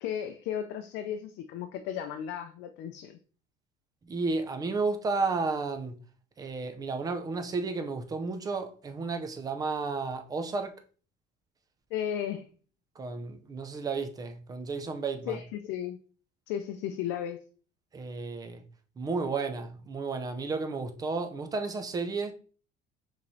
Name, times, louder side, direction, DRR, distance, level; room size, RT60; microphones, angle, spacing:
voice 1, 0.0-3.2 11.9-12.5 15.3-16.0 16.5-17.4, left 9 dB, 70° left, 0.5 m, -34 dB
voice 2, 4.0-5.9 6.4-10.8 13.0-15.4 17.9-18.6 19.0-22.3, right 4 dB, 20° right, 0.5 m, -32 dB
5.4 x 3.1 x 2.7 m
cardioid pair, 160°, 20 cm